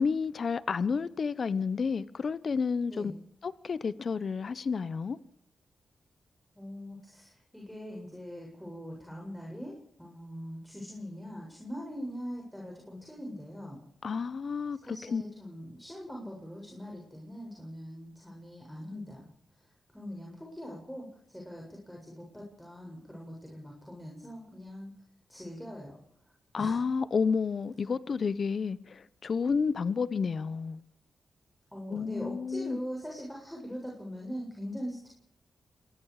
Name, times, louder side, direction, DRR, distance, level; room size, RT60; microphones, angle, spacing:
voice 1, 0.0-3.1 3.4-5.2 14.0-14.8 15.1-15.2 26.5-30.8 31.9-32.8, left 5 dB, 60° left, 1.0 m, -30 dB
voice 2, 6.6-13.8 14.7-19.3 19.9-24.9 25.3-26.0 26.6-26.8 31.7-35.1, equal, 5° left, 7.3 m, -42 dB
26.5 x 20.0 x 5.0 m
cardioid pair, 60°, 0 cm